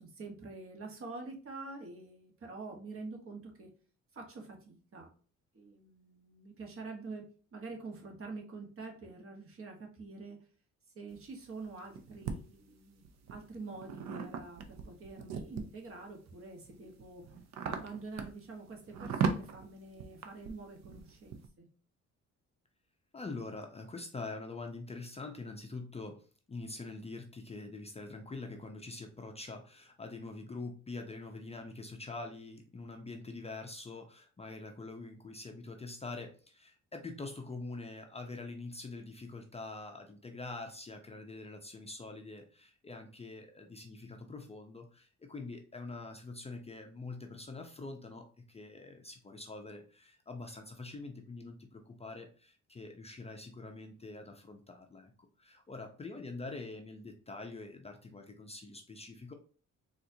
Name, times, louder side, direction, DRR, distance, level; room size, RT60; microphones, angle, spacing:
voice 1, 0.0-3.7 4.1-5.1 5.5-10.4 10.9-13.0 13.3-17.2 17.6-21.7, right 3 dB, 45° right, 1 dB, 1.2 m, -46 dB
sound 1, 11.1-12.4 13.0-15.9 16.4-21.5, right 6 dB, 60° right, 0.6 m, -38 dB
voice 2, 23.1-26.2 26.5-59.3, left 3 dB, 20° left, 4 dB, 0.5 m, -45 dB
4.2 x 2.5 x 2.6 m, 0.40 s
cardioid pair, 90°, 30 cm